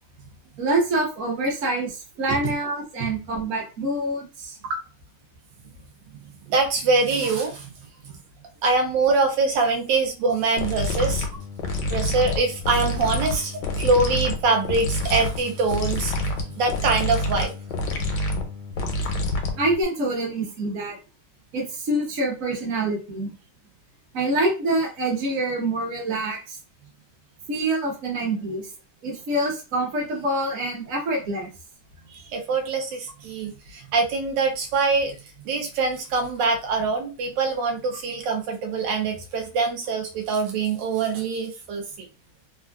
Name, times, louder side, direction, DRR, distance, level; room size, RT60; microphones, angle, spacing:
voice 1, 0.6-4.6 19.6-21.0 21.5-23.3 24.1-26.6 27.5-28.7 29.0-31.5, right 2 dB, 50° right, -2 dB, 1.3 m, -26 dB
voice 2, 6.5-7.7 8.6-11.3 11.9-16.1 16.6-17.5 32.1-35.1 35.5-42.1, right 3 dB, 85° right, 3 dB, 1.3 m, -24 dB
sound 1, 10.6-19.8, left 1 dB, 85° left, 1.3 m, -27 dB
3.6 x 2.2 x 2.3 m, 0.33 s
omnidirectional pair, 1.9 m